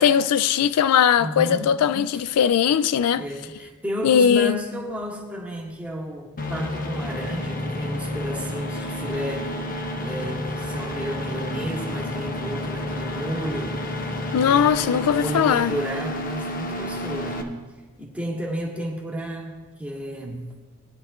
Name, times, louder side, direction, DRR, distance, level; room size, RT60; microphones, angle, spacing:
voice 1, 0.0-3.2 4.0-4.6 14.3-15.7, left 8 dB, 90° left, 0.3 m, -19 dB
voice 2, 1.2-1.8 2.1-2.3 3.2-14.7 14.9-17.5 18.0-20.5, equal, 5° right, 1.9 m, -33 dB
sound 1, 6.4-17.4, left 1 dB, 40° left, 1.0 m, -30 dB
20.0 x 10.0 x 2.4 m
head